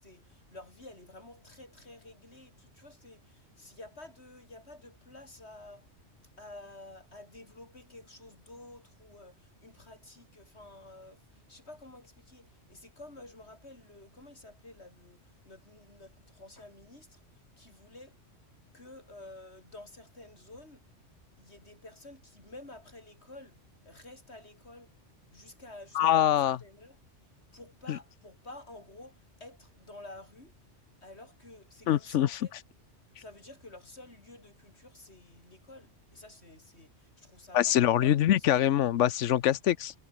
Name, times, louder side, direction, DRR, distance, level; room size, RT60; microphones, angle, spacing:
voice 1, 0.0-5.9 6.4-18.2 18.7-20.9 21.4-23.6 23.8-24.9 25.3-27.0 27.5-30.5 31.0-32.5 33.2-38.9, left 2 dB, 60° left, 5.8 m, -51 dB
voice 2, 26.0-26.6 27.9-28.0 31.9-32.3 37.5-39.9, left 11 dB, 80° left, 1.0 m, -24 dB
omnidirectional pair, 1.2 m